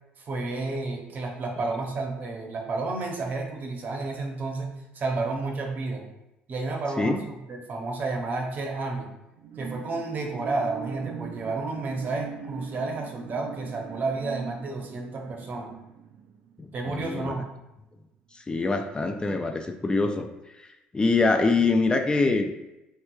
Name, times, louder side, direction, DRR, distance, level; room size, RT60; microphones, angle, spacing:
voice 1, 0.2-4.7 4.9-6.0 6.5-9.1 9.6-15.7 16.7-17.5, right 3 dB, 50° right, 1 dB, 0.7 m, -31 dB
sound 1, 9.3-17.1 17.6-17.7, right 7 dB, 65° right, 0.4 m, -41 dB
voice 2, 16.6-17.3 18.3-20.3 20.6-20.7 20.9-22.5, left 3 dB, 20° left, 5 dB, 0.3 m, -24 dB
3.3 x 2.9 x 2.3 m, 0.95 s
supercardioid pair, 75°, 4 cm